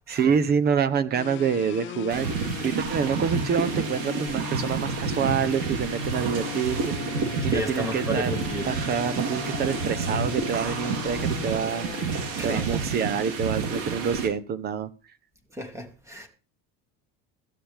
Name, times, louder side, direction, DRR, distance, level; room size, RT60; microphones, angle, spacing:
voice 1, 0.1-2.3 2.6-7.0 7.4-8.3 8.6-11.9 12.4-14.9, right 7 dB, 25° right, 0.9 m, -27 dB
sound 1, 1.1-13.5, left 14 dB, 35° left, 0.5 m, -38 dB
sound 2, 2.1-14.3, right 5 dB, 65° right, 3.8 m, -29 dB
voice 2, 7.5-8.7 12.4-12.8 15.5-16.3, equal, 10° right, 2.0 m, -33 dB
16.0 x 13.0 x 3.6 m
cardioid pair, 170°, 36 cm